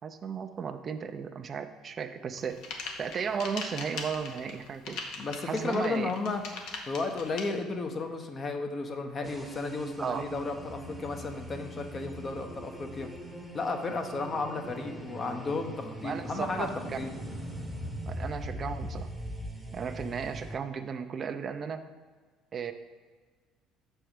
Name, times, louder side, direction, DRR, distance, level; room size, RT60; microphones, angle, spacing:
voice 1, 0.0-2.6 3.0-5.0 5.5-6.1 10.0-10.3 16.0-17.0 18.0-19.1 19.7-21.8 22.5-22.7, right 6 dB, 40° right, 9 dB, 0.5 m, -35 dB
sound 1, 2.3-7.4, left 4 dB, 75° left, 1.0 m, -39 dB
voice 2, 5.2-6.4 6.9-13.1 13.5-16.7 17.0-17.1, left 3 dB, 40° left, 5 dB, 0.8 m, -33 dB
sound 2, 9.2-20.6, equal, 5° right, 0.9 m, -41 dB
6.1 x 4.5 x 5.1 m, 1.4 s
supercardioid pair, 85°, 0 cm